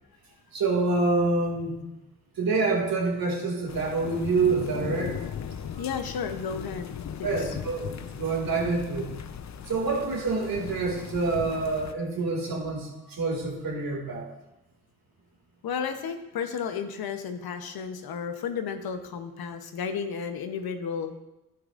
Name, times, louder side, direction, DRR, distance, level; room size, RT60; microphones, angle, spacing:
voice 1, 0.5-1.8 2.4-5.2 7.2-9.1 9.7-14.3, right 3 dB, 75° right, -1 dB, 2.3 m, -27 dB
sound 1, 3.7-11.9, left 8 dB, 50° left, 0.6 m, -38 dB
voice 2, 5.8-7.6 15.6-21.1, left 6 dB, 80° left, 7 dB, 0.9 m, -33 dB
11.0 x 9.3 x 2.5 m, 0.96 s
supercardioid pair, 40°, 36 cm